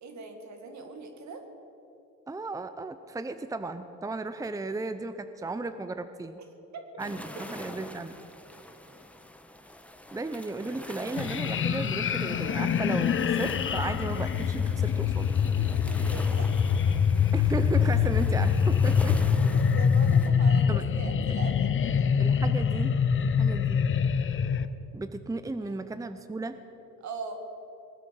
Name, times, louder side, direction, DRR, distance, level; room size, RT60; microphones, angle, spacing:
voice 1, 0.0-1.4 6.7-6.8 15.5-16.5 16.9-17.0 19.1-22.1 25.6-25.8 27.0-27.4, right 4 dB, 65° right, 5 dB, 2.1 m, -41 dB
voice 2, 2.3-6.4 7.0-8.2 10.1-15.3 17.3-19.2 20.7-20.8 22.2-23.8 24.9-26.6, right 2 dB, 10° right, 10 dB, 0.7 m, -35 dB
sound 1, 7.0-20.3, left 1 dB, 5° left, 1.2 m, -44 dB
sound 2, 11.2-24.7, left 7 dB, 40° left, 0.7 m, -25 dB
20.0 x 9.4 x 7.6 m, 2.9 s
cardioid pair, 90°, 30 cm